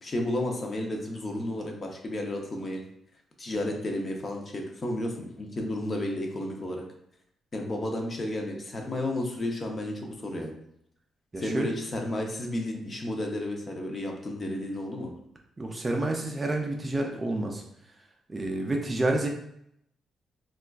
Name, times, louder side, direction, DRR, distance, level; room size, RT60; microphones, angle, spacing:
voice 1, 0.0-2.8 3.4-6.8 7.5-10.5 11.4-15.1, left 1 dB, 30° left, 1 dB, 0.6 m, -32 dB
voice 2, 11.3-11.7 15.6-17.6 18.3-19.3, right 2 dB, 20° right, 2 dB, 0.4 m, -29 dB
4.2 x 2.3 x 2.3 m, 0.75 s
cardioid pair, 130°, 0 cm